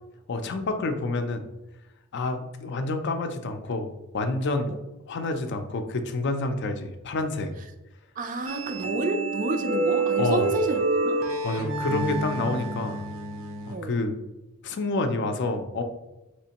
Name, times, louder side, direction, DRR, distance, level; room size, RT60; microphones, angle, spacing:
voice 1, 0.3-1.4 2.1-3.9 4.1-4.7 5.1-7.5 10.2-10.5 11.4-13.0 13.7-14.2 14.6-15.8, left 2 dB, 55° left, 7 dB, 0.4 m, -28 dB
voice 2, 8.2-11.1 13.7-13.9, right 2 dB, 40° right, 6 dB, 0.4 m, -29 dB
sound 1, 8.5-13.7, right 3 dB, 70° right, 0.7 m, -28 dB
4.2 x 3.1 x 2.9 m, 1.0 s
head